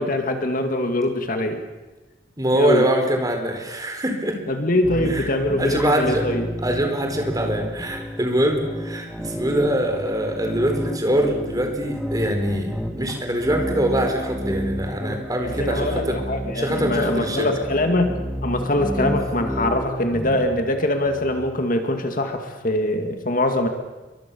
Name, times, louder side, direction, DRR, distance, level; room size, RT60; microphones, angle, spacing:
voice 1, 0.0-1.6 2.5-2.9 4.5-6.5 15.4-23.7, left 1 dB, 45° left, 5 dB, 2.2 m, -23 dB
voice 2, 2.4-4.4 5.1-5.3 5.6-6.3 6.6-16.2 16.5-17.5 18.9-19.1, right 1 dB, 20° right, 4 dB, 4.4 m, -23 dB
sound 1, 4.8-21.5, equal, ahead, 2.2 m, -31 dB
29.0 x 23.5 x 7.1 m, 1.2 s
head